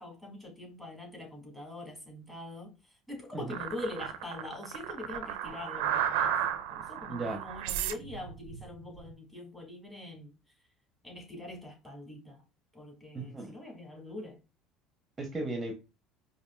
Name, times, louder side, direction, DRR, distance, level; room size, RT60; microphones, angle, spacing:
voice 1, 0.0-2.7 3.1-6.4 6.9-10.3 11.0-12.4 12.7-14.4, left 2 dB, 5° left, 2.0 m, -43 dB
sound 1, 3.5-9.1, right 9 dB, 85° right, 0.5 m, -33 dB
voice 2, 7.1-7.4 13.1-13.6 15.2-15.7, right 2 dB, 20° right, 0.8 m, -36 dB
4.8 x 2.5 x 2.2 m
supercardioid pair, 110°, 0 cm